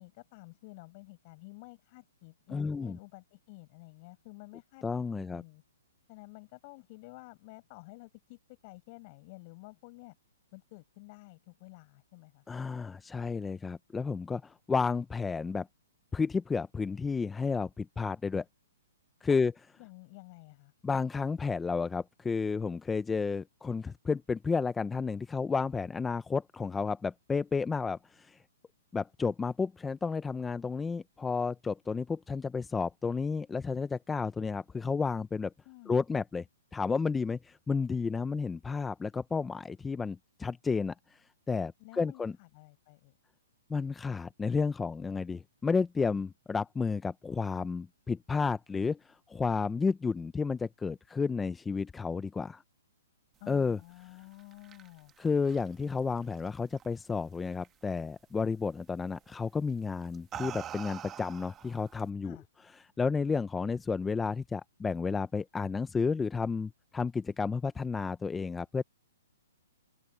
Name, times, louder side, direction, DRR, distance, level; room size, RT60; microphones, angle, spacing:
voice 1, 0.0-4.9 5.1-5.6 6.1-10.2 10.5-12.4 19.3-19.5 19.8-20.7 35.6-36.0 41.8-43.2 53.4-55.1 62.2-62.4, left 26 dB, 25° left, 7.8 m, -51 dB
voice 2, 2.5-3.0 4.8-5.4 12.5-15.7 16.1-18.4 19.2-19.5 20.8-28.4 28.9-35.5 35.9-36.5 36.7-41.2 41.5-42.4 43.7-52.6 53.5-53.8 55.2-62.4 63.0-68.8, left 5 dB, 5° left, 0.3 m, -32 dB
sound 1, 54.2-57.1 57.5-57.9 59.1-59.3 60.0-62.1, right 10 dB, 10° right, 1.3 m, -45 dB
hypercardioid pair, 175°, 0 cm